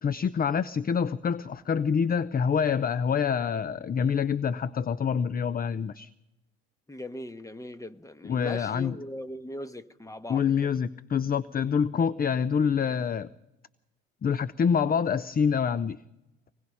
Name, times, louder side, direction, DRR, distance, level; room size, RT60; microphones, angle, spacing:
voice 1, 0.0-6.1 8.2-9.0 10.3-13.3 14.2-16.0, left 6 dB, 25° left, 0.6 m, -26 dB
voice 2, 6.9-10.7, left 1 dB, 10° left, 1.3 m, -40 dB
25.0 x 20.5 x 5.5 m
figure-of-eight pair, 55°, 38 cm